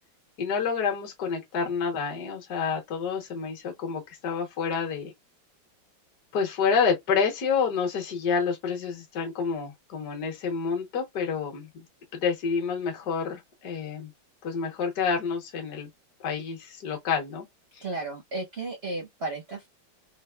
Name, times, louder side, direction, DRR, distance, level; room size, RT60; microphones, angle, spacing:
voice 1, 0.4-5.1 6.3-11.8 12.1-14.1 14.4-15.9 16.2-17.5, left 6 dB, 60° left, 1.5 m, -28 dB
voice 2, 17.8-19.7, right 2 dB, 60° right, 0.6 m, -34 dB
4.9 x 2.0 x 2.2 m
omnidirectional pair, 2.1 m